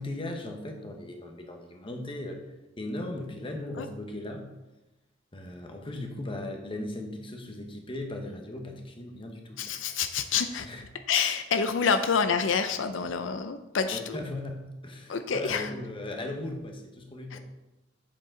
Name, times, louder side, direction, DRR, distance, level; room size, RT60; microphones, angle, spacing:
voice 1, 0.0-2.4 2.8-4.5 5.3-9.7 10.6-10.8 13.9-17.4, left 1 dB, 30° left, 3 dB, 1.1 m, -37 dB
voice 2, 9.6-10.7 11.1-14.2 15.1-15.7 17.3-17.4, left 6 dB, 85° left, 9 dB, 0.5 m, -27 dB
7.8 x 7.0 x 3.8 m, 0.99 s
head